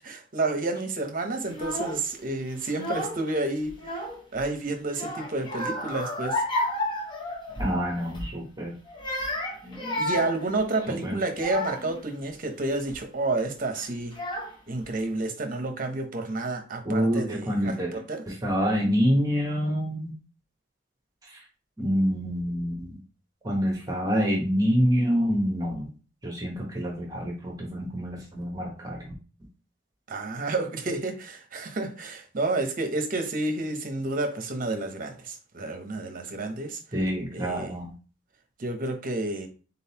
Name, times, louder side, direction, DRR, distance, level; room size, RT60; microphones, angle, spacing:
voice 1, 0.1-3.7 4.3-6.4 10.0-14.1 14.7-18.2 30.1-36.8 37.3-37.7 38.6-39.5, right 2 dB, 45° right, 0.8 m, -30 dB
Child speech kid speaking / Crying sobbing, 1.5-2.0 2.6-3.3 3.6-4.5 4.9-7.8 8.1-8.4 8.9-12.0 12.6-13.0 13.8-13.9 14.1-14.8, left 1 dB, 25° left, 0.9 m, -32 dB
voice 2, 7.6-8.8 10.9-11.2 16.8-20.1 21.2-21.4 21.8-22.9 23.4-25.9 26.2-29.1 36.9-37.9, equal, 20° right, 1.1 m, -27 dB
3.9 x 3.8 x 2.8 m
head